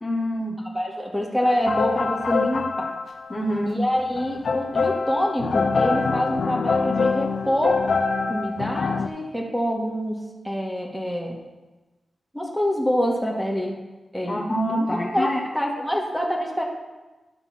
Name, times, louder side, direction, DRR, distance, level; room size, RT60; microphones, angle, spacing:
voice 1, 0.0-0.6 3.3-3.8 14.3-15.4, equal, 25° left, -2 dB, 1.1 m, -25 dB
voice 2, 0.7-2.9 3.7-7.9 8.3-11.4 12.3-13.8 14.1-14.4 14.7-16.6, equal, 5° right, -1 dB, 1.8 m, -26 dB
sound 1, 1.4-3.4 3.9-9.1, left 4 dB, 70° left, 0.5 m, -25 dB
11.5 x 3.9 x 5.9 m, 1.1 s
cardioid pair, 75°, 0 cm